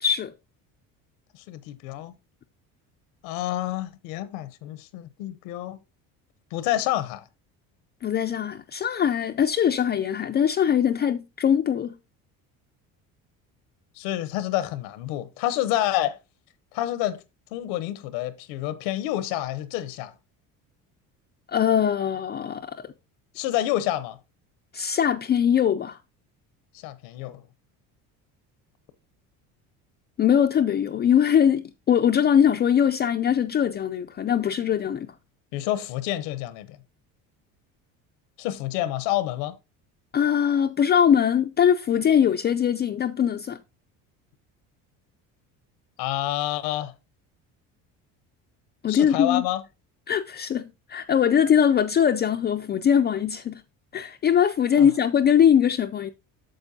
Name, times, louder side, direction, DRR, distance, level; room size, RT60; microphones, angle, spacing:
voice 1, 0.0-0.3 8.0-11.9 21.5-22.9 24.7-26.0 30.2-35.1 40.1-43.6 48.8-49.4 50.1-53.6 53.9-56.1, left 8 dB, 30° left, 0.4 m, -21 dB
voice 2, 1.3-2.1 3.2-5.8 6.5-7.3 14.0-16.2 16.7-17.2 17.5-20.1 23.3-24.2 26.8-27.4 35.5-36.8 38.4-39.6 46.0-46.9 48.9-49.6 54.8-54.9, left 14 dB, 90° left, 0.9 m, -28 dB
8.9 x 6.7 x 2.7 m
cardioid pair, 110°, 37 cm